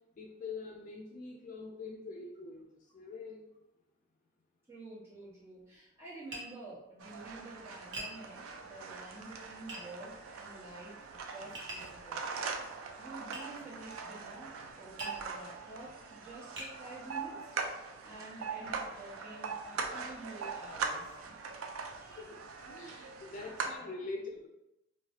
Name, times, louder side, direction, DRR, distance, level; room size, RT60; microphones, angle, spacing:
voice 1, 0.2-2.7 2.9-3.5 22.2-22.4 22.7-24.5, left 3 dB, 40° left, -1 dB, 0.3 m, -44 dB
voice 2, 4.7-8.4 8.7-12.3 12.7-17.4 17.7-21.2 22.0-22.3 23.7-23.9, right 2 dB, 15° right, -10 dB, 1.2 m, -49 dB
Tap, 6.3-6.5 7.9-8.2 9.7-9.9 11.5-11.9 13.3-13.5 15.0-15.2 15.9-16.0 16.6-16.8, right 1 dB, 60° right, 0.9 m, -42 dB
sound 1, 7.0-23.8, right 5 dB, 85° right, 0.4 m, -41 dB
3.1 x 2.3 x 2.8 m, 0.92 s
head